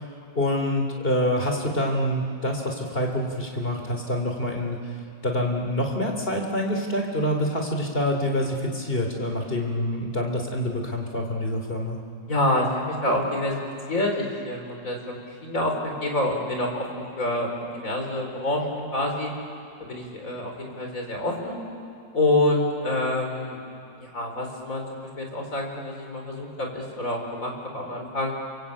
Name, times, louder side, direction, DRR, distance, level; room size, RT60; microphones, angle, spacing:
voice 1, 0.3-4.9 5.2-12.0, left 1 dB, 30° left, 2 dB, 3.3 m, -26 dB
voice 2, 12.3-13.6 13.9-15.7 16.0-19.3 19.8-21.6 22.1-23.6 24.0-28.3, left 1 dB, 45° left, 2 dB, 4.4 m, -27 dB
30.0 x 23.0 x 8.6 m, 2.4 s
omnidirectional pair, 2.0 m